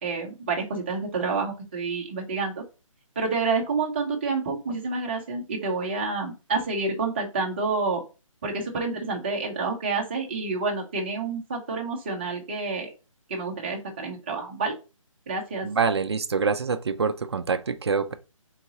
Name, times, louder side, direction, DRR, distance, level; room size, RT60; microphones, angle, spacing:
voice 1, 0.0-2.6 3.2-8.0 8.4-12.9 13.3-14.8 15.3-15.7, right 4 dB, 20° right, 0.8 m, -28 dB
voice 2, 15.6-18.1, right 5 dB, 50° right, 0.5 m, -25 dB
4.4 x 4.0 x 2.8 m
hypercardioid pair, 170°, 18 cm